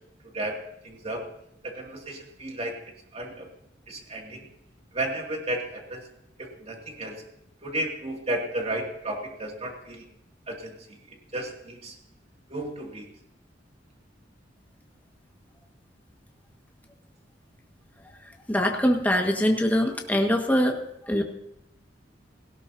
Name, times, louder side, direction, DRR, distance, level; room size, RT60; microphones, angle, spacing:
voice 1, 0.3-1.3 1.6-2.8 3.1-3.5 3.9-4.5 4.9-6.0 6.4-7.2 7.6-10.0 10.5-12.0 12.5-13.1, right 1 dB, 35° right, 1 dB, 2.4 m, -33 dB
voice 2, 18.5-21.2, equal, 10° left, 2 dB, 1.6 m, -23 dB
18.0 x 16.5 x 2.8 m, 0.79 s
head